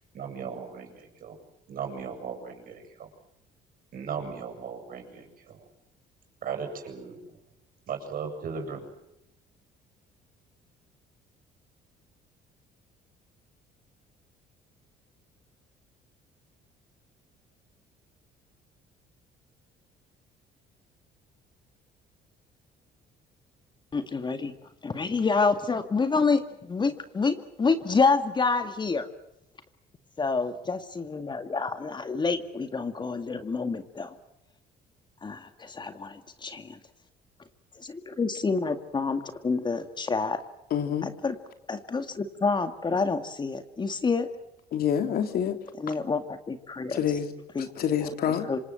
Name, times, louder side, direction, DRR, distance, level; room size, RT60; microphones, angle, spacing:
voice 1, 0.1-1.4 1.7-3.1 3.9-5.6 6.4-7.4 7.9-8.8, right 6 dB, 55° right, 7.8 m, -37 dB
voice 2, 23.9-24.5 24.8-29.1 30.2-34.2 35.2-36.8 37.8-40.4 41.2-41.4 41.7-44.3 45.8-46.2 46.5-47.0 47.6-47.7 48.5-48.6, left 4 dB, 25° left, 2.1 m, -28 dB
voice 3, 40.7-41.1 44.7-45.6 45.9-46.0 46.9-48.5, left 8 dB, 65° left, 3.3 m, -27 dB
27.0 x 26.0 x 7.7 m
cardioid pair, 110°, 17 cm